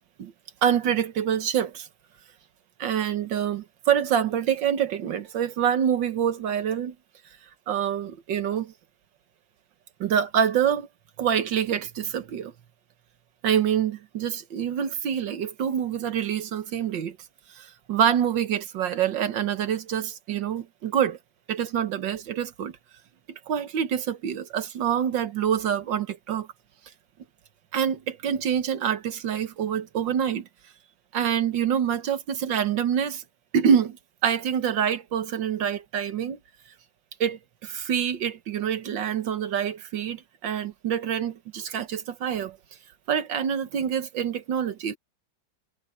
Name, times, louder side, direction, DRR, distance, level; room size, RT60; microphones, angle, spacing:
voice 1, 0.6-1.9 2.8-7.0 7.7-8.7 10.0-10.9 11.2-12.5 13.4-17.2 17.6-21.2 21.5-22.8 23.5-26.5 27.7-30.5 31.1-33.2 33.5-34.0 34.2-36.4 37.2-42.6 43.1-45.0, right 8 dB, 70° right, 1.8 m, -26 dB
omnidirectional pair, 2.1 m